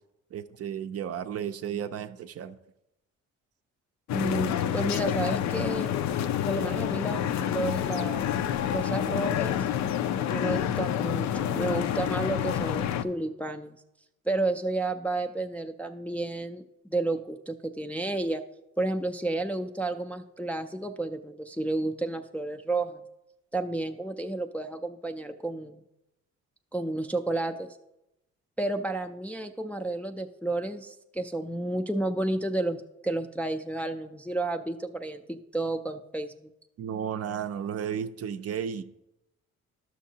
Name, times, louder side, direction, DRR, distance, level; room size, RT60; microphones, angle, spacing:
voice 1, 0.3-2.6 36.8-38.8, right 8 dB, 50° right, 10 dB, 0.5 m, -33 dB
sound 1, 4.1-13.0, left 10 dB, 65° left, 0.4 m, -28 dB
voice 2, 4.1-5.9 6.5-8.3 8.7-9.6 10.3-13.8 14.3-18.4 18.8-23.0 23.5-25.8 26.7-27.8 28.6-36.5, right 2 dB, 5° left, 4 dB, 0.3 m, -31 dB
12.0 x 6.1 x 2.8 m, 0.89 s
cardioid pair, 90°, 30 cm